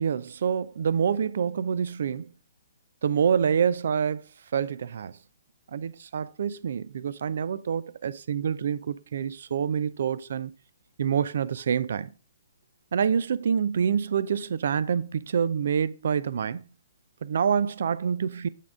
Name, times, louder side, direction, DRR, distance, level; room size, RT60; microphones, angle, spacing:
voice 1, 0.0-2.3 3.0-4.2 4.5-5.1 5.7-10.5 11.0-12.1 12.9-16.6 17.2-18.5, right 7 dB, 60° right, 0.4 m, -26 dB
8.3 x 3.6 x 3.5 m
figure-of-eight pair, 130°, 0 cm